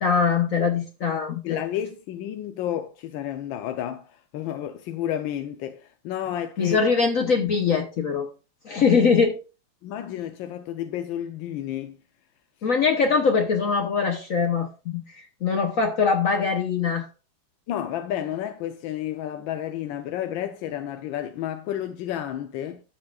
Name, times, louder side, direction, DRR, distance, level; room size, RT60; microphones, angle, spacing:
voice 1, 0.0-1.6 6.6-8.3 8.6-9.4 12.6-15.0 15.4-17.1, left 5 dB, 55° left, 1.2 m, -22 dB
voice 2, 1.4-4.1 4.3-6.8 9.8-12.0 17.7-22.8, left 11 dB, 90° left, 1.5 m, -31 dB
12.5 x 7.2 x 2.4 m
omnidirectional pair, 2.1 m